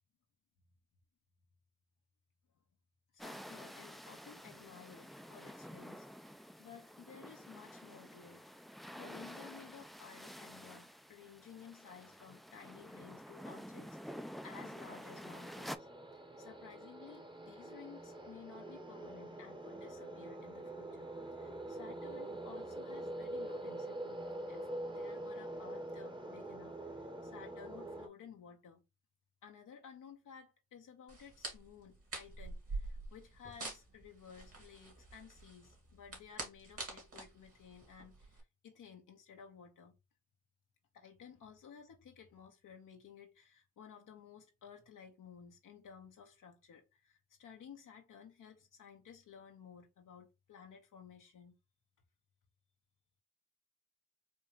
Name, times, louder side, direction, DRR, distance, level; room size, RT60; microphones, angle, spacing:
voice 1, 3.1-8.4 8.7-24.2 24.5-28.8 29.4-39.9 40.9-51.6, left 7 dB, 90° left, 0.8 m, -56 dB
sound 1, 3.2-15.8, equal, ahead, 0.4 m, -50 dB
sound 2, 14.6-28.1, right 1 dB, 15° right, 0.9 m, -45 dB
sound 3, 31.1-38.4, right 3 dB, 50° right, 1.9 m, -46 dB
4.4 x 2.4 x 3.2 m
cardioid pair, 45°, 31 cm